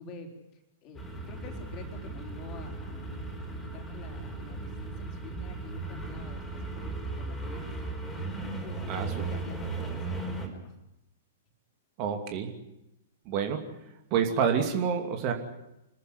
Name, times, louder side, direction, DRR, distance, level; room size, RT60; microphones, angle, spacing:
voice 1, 0.0-7.6 8.1-8.2 8.6-10.7, left 2 dB, 35° left, 3 dB, 4.1 m, -47 dB
sound 1, 0.9-10.5, right 3 dB, 10° left, 4.8 m, -37 dB
voice 2, 12.0-12.5 13.2-13.6 14.1-15.3, right 7 dB, 40° right, 5 dB, 2.7 m, -28 dB
26.0 x 14.5 x 9.7 m, 0.89 s
figure-of-eight pair, 105°, 0 cm